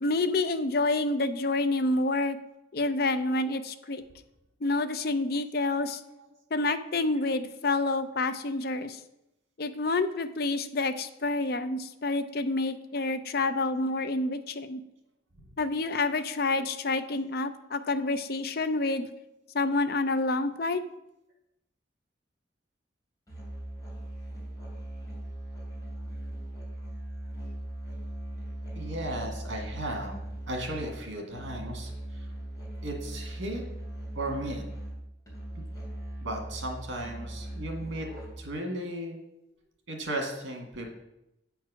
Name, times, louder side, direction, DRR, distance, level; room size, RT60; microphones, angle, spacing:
voice 1, 0.0-2.4 2.7-4.0 4.6-6.0 6.5-9.0 9.6-14.8 15.6-19.1 19.5-20.8, left 2 dB, 50° left, 10 dB, 0.5 m, -28 dB
Musical instrument, 23.3-38.6, right 1 dB, 15° left, 2.7 m, -39 dB
voice 2, 28.8-30.2 30.5-32.3 32.8-33.6 34.1-34.6 36.2-38.1 38.4-39.2 39.9-40.9, right 1 dB, 85° right, 2 dB, 1.9 m, -35 dB
8.5 x 4.6 x 6.2 m, 0.88 s
head